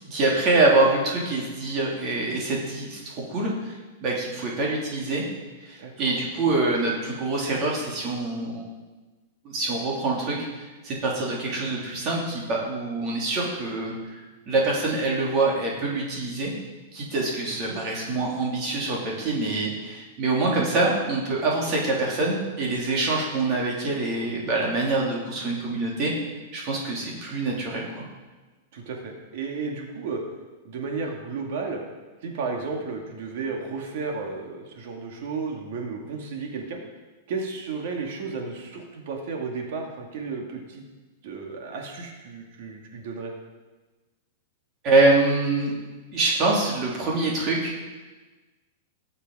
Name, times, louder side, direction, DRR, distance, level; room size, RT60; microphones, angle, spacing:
voice 1, 0.1-5.2 5.6-8.7 9.4-10.4 10.8-14.2 14.5-16.5 16.9-26.1 26.5-28.1 44.8-45.7 46.1-47.7, right 2 dB, 30° right, -3 dB, 3.0 m, -25 dB
voice 2, 5.8-6.2 17.5-17.8 28.7-30.2 30.6-31.8 32.2-36.8 37.3-40.8 41.2-43.3, right 4 dB, 55° right, 2 dB, 2.1 m, -33 dB
18.0 x 6.8 x 4.9 m, 1.2 s
supercardioid pair, 170°, 0 cm